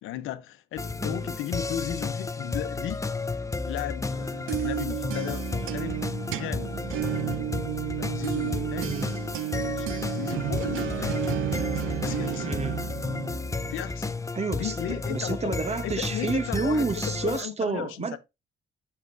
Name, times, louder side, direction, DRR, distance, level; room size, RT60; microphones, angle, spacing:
voice 1, 0.0-3.0 3.7-6.8 8.0-9.0 9.5-11.2 12.0-12.5 13.7-14.2 14.6-15.6 15.8-18.2, left 12 dB, 90° left, 0.8 m, -36 dB
sound 1, 0.8-17.4, left 3 dB, 15° left, 0.5 m, -32 dB
sound 2, 4.1-13.8, right 12 dB, 85° right, 0.7 m, -32 dB
voice 2, 8.8-9.1 12.4-12.8 14.3-14.8 15.1-18.2, right 4 dB, 35° right, 1.0 m, -29 dB
7.5 x 6.5 x 2.6 m
cardioid pair, 90°, 20 cm